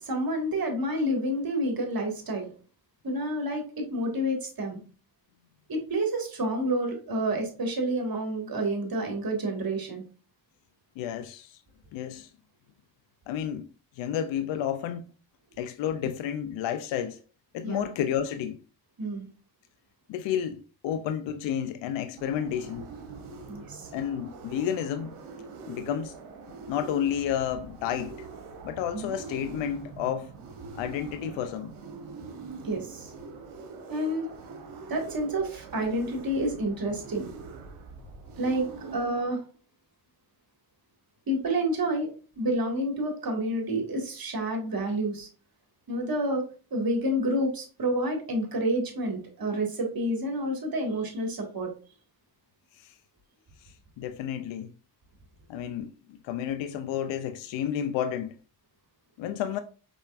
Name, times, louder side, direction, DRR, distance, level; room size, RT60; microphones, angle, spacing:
voice 1, 0.0-2.5 3.0-4.8 5.7-10.0 17.6-17.9 19.0-19.3 23.5-23.9 28.9-29.1 32.6-33.1 33.9-34.3 34.9-37.3 38.4-38.6 38.9-39.4 41.3-42.1 42.4-45.3 45.9-46.4 46.7-51.7, right 1 dB, 45° right, 2.0 m, -29 dB
voice 2, 11.0-11.6 11.9-12.3 13.3-13.7 14.0-15.1 15.6-17.2 17.5-18.6 20.1-22.9 23.9-25.2 25.7-26.2 26.7-28.3 28.6-30.3 30.7-31.7 52.7-52.9 53.6-54.7 55.5-58.4 59.2-59.6, left 9 dB, 65° left, 0.5 m, -31 dB
sound 1, 22.2-39.3, right 4 dB, 85° right, 1.0 m, -43 dB
4.7 x 4.3 x 2.5 m
hypercardioid pair, 45°, 48 cm